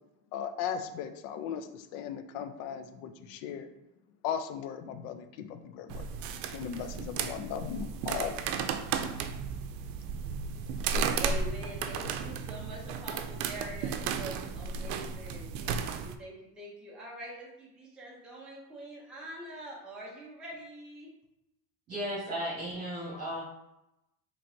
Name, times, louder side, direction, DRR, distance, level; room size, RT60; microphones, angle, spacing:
voice 1, 0.3-3.7 4.2-6.1 6.5-8.3, left 8 dB, 70° left, 8 dB, 0.6 m, -37 dB
sound 1, 5.9-16.2, right 6 dB, 90° right, 0.5 m, -34 dB
voice 2, 11.1-21.1, right 1 dB, ahead, -5 dB, 0.6 m, -44 dB
voice 3, 21.9-23.4, equal, 30° right, -9 dB, 1.5 m, -35 dB
4.4 x 3.1 x 2.6 m, 0.89 s
cardioid pair, 155°, 46 cm